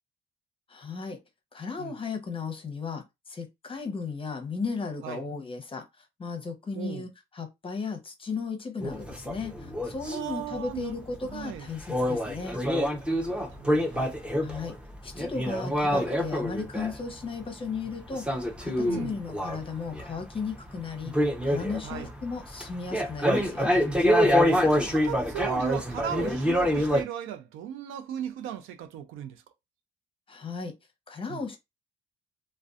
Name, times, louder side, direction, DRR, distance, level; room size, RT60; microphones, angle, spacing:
voice 1, 0.7-1.2 1.5-7.1 7.3-12.6 14.4-14.7 15.0-21.1 21.4-23.8 30.3-30.7 31.1-31.6, left 4 dB, 25° left, 0.7 m, -35 dB
voice 2, 6.7-7.1 10.1-11.0 11.3-11.7 13.1-14.1 18.9-19.2 21.8-22.1 24.5-29.4 31.3-31.4, right 10 dB, 90° right, 0.4 m, -37 dB
sound 1, 8.8-17.5 17.7-20.8 21.0-27.0, equal, 5° right, 0.6 m, -26 dB
2.5 x 2.2 x 2.3 m
cardioid pair, 90°, 20 cm